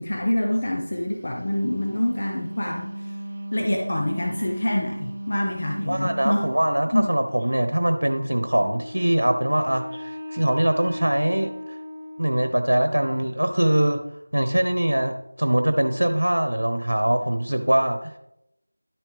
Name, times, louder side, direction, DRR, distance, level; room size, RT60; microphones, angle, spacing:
voice 1, 0.0-3.2 3.5-6.5 6.9-7.1, left 1 dB, 50° left, 0 dB, 1.3 m, -26 dB
Wind instrument woodwind instrument, 1.3-6.6, right 1 dB, 45° right, 0.8 m, -35 dB
voice 2, 5.9-11.8 12.2-14.0 14.3-18.2, right 1 dB, 75° right, 7 dB, 1.1 m, -23 dB
Wind instrument woodwind instrument 2, 8.5-12.7, left 1 dB, 15° left, 3.4 m, -37 dB
11.5 x 7.5 x 3.4 m, 0.85 s
figure-of-eight pair, 170°, 0 cm